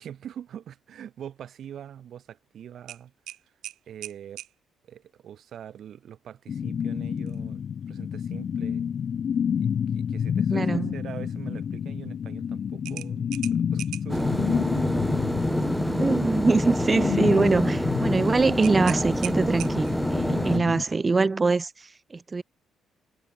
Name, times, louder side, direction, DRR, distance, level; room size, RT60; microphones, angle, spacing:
voice 1, 0.0-3.1 3.9-4.4 4.8-8.9 9.6-14.4, right 9 dB, 65° right, 7.3 m, -43 dB
sound 1, 2.9-4.5 7.2-7.4 7.8-7.9 12.8-14.2 18.6-20.1, right 13 dB, 85° right, 3.7 m, -39 dB
sound 2, 6.5-20.8, left 7 dB, 55° left, 0.4 m, -29 dB
voice 2, 10.5-11.0 16.0-22.4, right 4 dB, 30° right, 0.7 m, -24 dB
sound 3, 14.1-20.6, equal, ahead, 1.0 m, -27 dB
cardioid pair, 90°, 0 cm